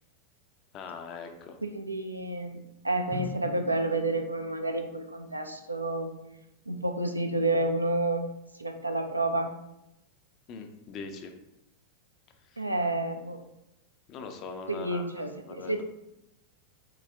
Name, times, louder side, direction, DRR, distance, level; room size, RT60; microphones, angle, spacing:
voice 1, 0.7-1.6 10.5-11.3 12.5-12.6 14.1-15.7, left 5 dB, 35° left, 6 dB, 0.5 m, -42 dB
voice 2, 1.6-6.1 6.7-8.3 8.6-9.5 12.6-13.4 14.7-15.8, right 2 dB, 85° right, 5 dB, 0.4 m, -30 dB
Drum, 3.1-5.8, right 1 dB, 40° right, 0.6 m, -44 dB
3.9 x 2.7 x 3.4 m, 0.87 s
figure-of-eight pair, 90°, 0 cm